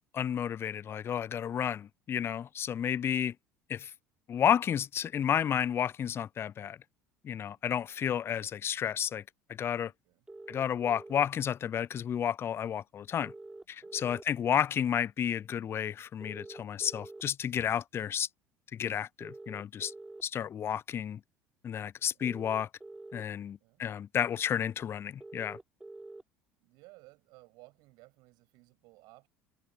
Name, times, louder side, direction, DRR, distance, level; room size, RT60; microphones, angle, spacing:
voice 1, 0.1-3.3 3.7-3.9 4.3-6.8 7.2-9.2 9.6-9.9 10.5-13.3 13.7-18.3 18.7-19.9 20.2-21.2 21.6-22.7 23.1-25.6, left 9 dB, 30° left, 0.3 m, -31 dB
voice 2, 9.9-10.3 13.8-14.2 22.0-22.3 23.6-23.8 26.6-29.3, right 23 dB, 60° right, 7.8 m, -59 dB
sound 1, 10.3-11.2 13.2-14.2 16.2-17.2 19.2-20.2 22.2-23.2 25.2-26.2, right 2 dB, 10° right, 4.1 m, -47 dB
hypercardioid pair, 65°, 8 cm